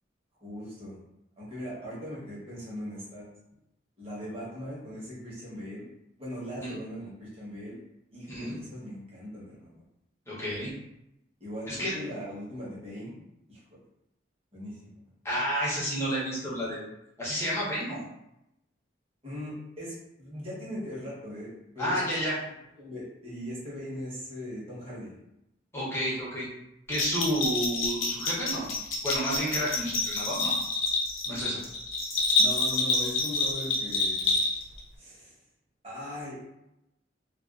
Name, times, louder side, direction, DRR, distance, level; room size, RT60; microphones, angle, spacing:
voice 1, 0.4-1.0 1.4-3.3 4.0-5.9 6.2-7.8 8.1-9.8 11.4-13.2 13.5-13.6 14.5-15.0 19.2-22.0 22.8-25.1 32.4-34.4 35.0-35.3 35.8-36.4, equal, 30° right, -8 dB, 1.0 m, -39 dB
voice 2, 10.3-10.7 11.7-11.9 15.2-16.8 17.2-18.0 21.8-22.4 25.7-26.5 26.9-28.7 29.0-30.5 31.3-31.6, equal, 15° left, -7 dB, 0.7 m, -30 dB
Bell, 26.9-34.8, left 3 dB, 85° left, 0.7 m, -28 dB
2.4 x 2.3 x 2.3 m, 0.86 s
head